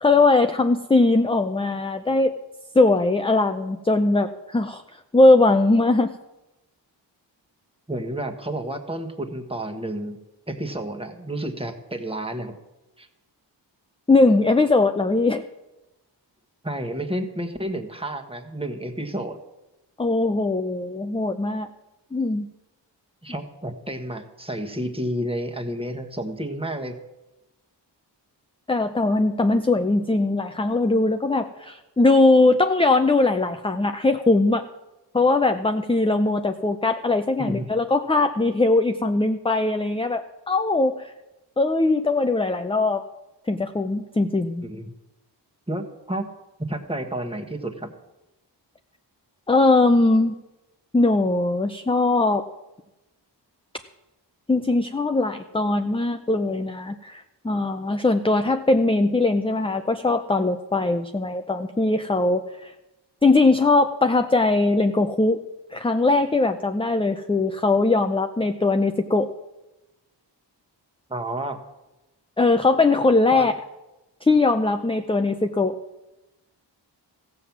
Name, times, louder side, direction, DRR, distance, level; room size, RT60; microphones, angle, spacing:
voice 1, 0.0-2.3 2.7-4.8 5.1-6.1 14.1-15.5 20.0-21.7 22.1-22.5 28.7-34.7 35.1-41.1 41.6-43.0 43.5-44.7 49.5-50.4 50.9-52.4 54.5-62.7 63.2-65.4 65.7-69.3 72.4-73.5 74.2-75.8, left 2 dB, 15° left, 7 dB, 0.6 m, -20 dB
voice 2, 7.9-10.2 10.5-12.6 13.0-13.1 16.6-19.4 23.2-27.0 37.4-37.7 44.6-44.9 45.7-46.3 46.7-47.9 71.1-71.6 73.3-73.5, right 1 dB, 15° right, 4 dB, 1.4 m, -30 dB
15.0 x 7.7 x 7.2 m, 1.0 s
wide cardioid pair, 80°, 43 cm